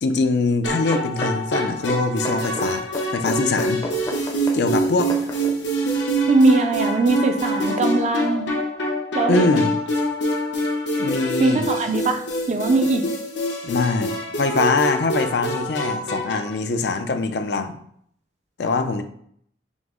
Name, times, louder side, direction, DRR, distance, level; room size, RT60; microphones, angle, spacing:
voice 1, 0.0-2.8 3.1-3.8 4.5-5.1 9.3-9.7 11.0-11.6 13.6-17.7 18.6-19.0, left 3 dB, 70° left, 8 dB, 0.4 m, -23 dB
sound 1, 0.6-16.6, right 1 dB, 90° left, 0.8 m, -25 dB
sound 2, 0.7-5.6 6.2-6.3, left 1 dB, 20° left, 0.5 m, -32 dB
voice 2, 6.3-8.5 9.1-9.5 11.4-13.1, right 3 dB, 40° right, 7 dB, 0.4 m, -20 dB
6.0 x 2.0 x 3.6 m, 0.65 s
head